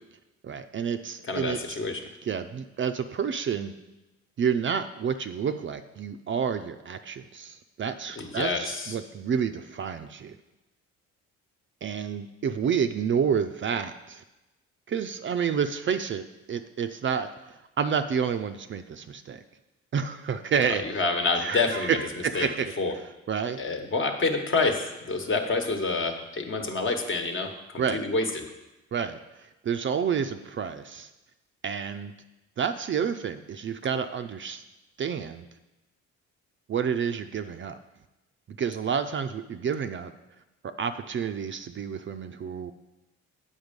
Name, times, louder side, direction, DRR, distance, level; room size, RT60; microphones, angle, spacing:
voice 1, 0.4-1.6 2.2-3.7 4.4-10.4 11.8-14.2 14.9-17.3 17.8-19.4 19.9-20.8 21.4-22.7 23.3-23.6 27.8-28.0 28.9-31.1 31.6-32.1 32.6-34.6 35.0-35.5 36.7-37.8 38.6-40.1 40.6-42.7, right 7 dB, 40° right, 9 dB, 0.5 m, -29 dB
voice 2, 1.3-2.0 8.2-9.0 20.8-22.0 22.3-22.5 22.8-22.9 23.6-28.4, left 3 dB, 40° left, 4 dB, 1.2 m, -27 dB
8.1 x 5.5 x 5.2 m, 1.0 s
cardioid pair, 90°, 30 cm